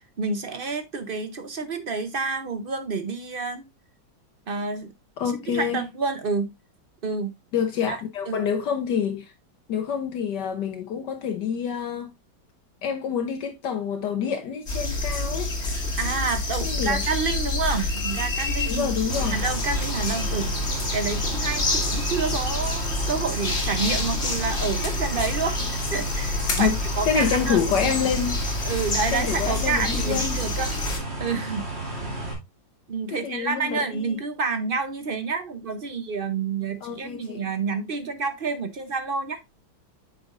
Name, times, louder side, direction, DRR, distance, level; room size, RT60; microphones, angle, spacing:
voice 1, 0.2-3.6 4.5-4.9 5.5-6.5 7.0-7.3 7.9-8.0 8.3-8.4 16.0-18.9 19.3-20.5 20.9-27.6 28.6-30.7 31.2-31.6 32.9-39.4, right 4 dB, 55° right, 0.6 m, -28 dB
voice 2, 5.2-5.8 7.5-9.3 9.7-12.1 12.8-15.5 16.6-17.0 18.7-19.4 26.5-26.8 27.1-28.4 29.1-30.4 33.1-34.2 36.8-37.4, left 7 dB, 70° left, 1.4 m, -27 dB
sound 1, 14.7-31.0, left 2 dB, 35° left, 1.9 m, -28 dB
sound 2, 19.1-32.3, right 2 dB, 35° right, 2.6 m, -33 dB
8.4 x 6.1 x 2.5 m
omnidirectional pair, 2.0 m